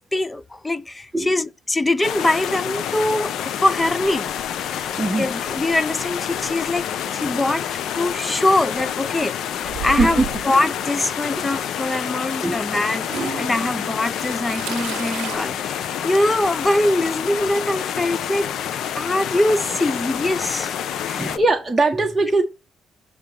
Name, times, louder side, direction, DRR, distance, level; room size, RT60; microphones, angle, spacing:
voice 1, 0.0-4.3 4.6-4.7 5.2-7.7 8.0-18.5 18.9-20.7 21.1-21.4, left 1 dB, 15° left, 0.7 m, -23 dB
sound 1, 2.0-21.4, left 9 dB, 75° left, 0.8 m, -28 dB
voice 2, 5.0-5.4 10.0-10.3 11.3-11.5 12.4-12.7 13.1-13.5 21.0-22.4, right 2 dB, 15° right, 1.3 m, -21 dB
Toilet flush / Trickle dribble, 9.6-10.5 11.6-11.7 13.0-15.4, right 11 dB, 85° right, 0.7 m, -32 dB
8.8 x 3.1 x 5.1 m
cardioid pair, 90°, 0 cm